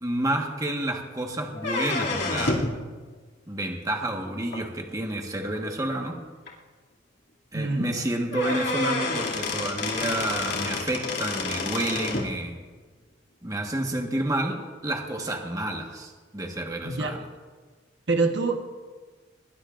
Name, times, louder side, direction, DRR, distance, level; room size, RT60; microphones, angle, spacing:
voice 1, 0.0-2.7 3.5-6.2 7.5-12.5 13.4-17.2, right 1 dB, 20° right, 2 dB, 1.4 m, -29 dB
sound 1, 1.6-2.8 4.5-4.6 5.5-5.6 6.1-6.2 6.5-6.6 7.9-8.0 8.3-12.3, left 3 dB, 60° left, 2.5 m, -29 dB
voice 2, 7.5-7.9 16.8-17.1 18.1-18.6, right 3 dB, 65° right, 4 dB, 1.2 m, -25 dB
21.0 x 19.5 x 2.5 m, 1.4 s
head